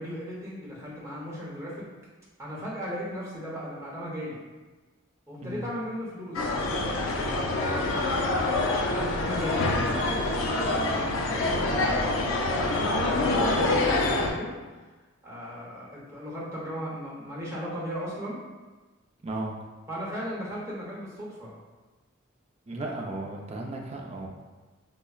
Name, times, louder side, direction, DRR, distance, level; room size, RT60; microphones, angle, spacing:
voice 1, 0.0-1.9 2.4-4.4 5.3-8.5 8.9-14.5 15.2-18.4 19.9-21.6, equal, 15° right, -6 dB, 0.8 m, -37 dB
sound 1, 6.3-14.3, left 2 dB, 80° left, 0.4 m, -26 dB
voice 2, 19.2-19.5 22.7-24.3, right 2 dB, 30° right, 0 dB, 0.4 m, -35 dB
5.4 x 2.0 x 2.3 m, 1.3 s
head